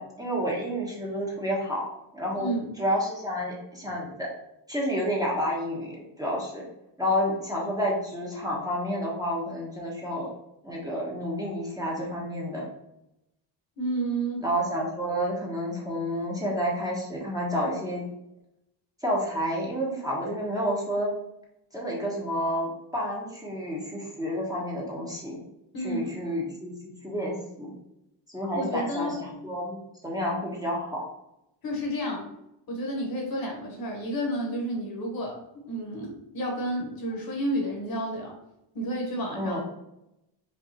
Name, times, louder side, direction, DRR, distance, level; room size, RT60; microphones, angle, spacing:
voice 1, 0.0-1.8 2.1-2.5 2.8-4.3 4.7-6.6 7.0-10.3 10.6-12.7 14.4-18.0 19.0-21.1 21.7-25.4 25.8-27.7 28.3-31.0 39.4-39.6, equal, 10° right, -5 dB, 1.0 m, -30 dB
voice 2, 13.8-14.4 25.7-26.2 28.5-29.2 31.6-32.3 32.7-35.4 35.7-38.3 38.7-39.6, right 1 dB, 55° left, 0 dB, 1.2 m, -31 dB
5.2 x 2.6 x 2.9 m, 0.86 s
cardioid pair, 125°, 44 cm